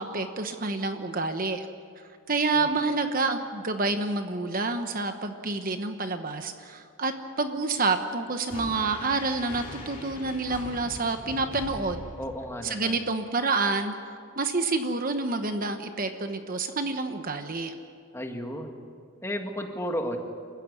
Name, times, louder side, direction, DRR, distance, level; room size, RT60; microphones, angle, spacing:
voice 1, 0.0-1.7 2.3-12.0 12.6-13.9 14.4-17.7, right 3 dB, 40° right, 7 dB, 1.1 m, -28 dB
sound 1, 8.5-12.8, left 1 dB, 35° left, 2.9 m, -41 dB
voice 2, 12.2-13.0 18.1-18.8 19.2-20.2, equal, 10° left, 3 dB, 1.9 m, -33 dB
28.5 x 15.5 x 9.7 m, 2.2 s
head